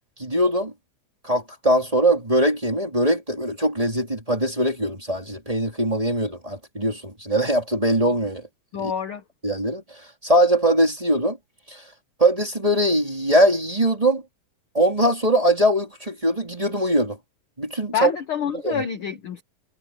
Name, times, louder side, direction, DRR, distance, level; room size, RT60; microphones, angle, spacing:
voice 1, 0.2-0.7 1.2-8.4 8.8-8.9 9.4-9.8 10.2-11.4 11.7-11.8 12.2-14.2 14.7-17.2 17.6-18.1 18.6-18.8, right 1 dB, 10° right, 2.9 m, -21 dB
voice 2, 8.7-9.2 17.9-19.4, left 7 dB, 70° left, 1.2 m, -27 dB
omnidirectional pair, 4.1 m